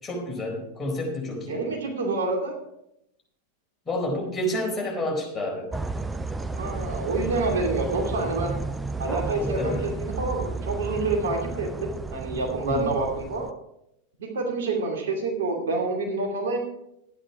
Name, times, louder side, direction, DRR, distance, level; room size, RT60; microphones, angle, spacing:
voice 1, 0.0-1.6 3.9-5.7 9.4-9.9 12.7-13.0, left 1 dB, 15° left, -2 dB, 4.2 m, -29 dB
voice 2, 1.5-2.5 6.6-8.5 9.0-13.5 14.2-16.7, right 3 dB, 60° right, 1 dB, 2.6 m, -27 dB
sound 1, 5.7-13.5, right 3 dB, 10° right, 0.6 m, -32 dB
12.0 x 9.8 x 4.8 m, 0.80 s
figure-of-eight pair, 90°, 0 cm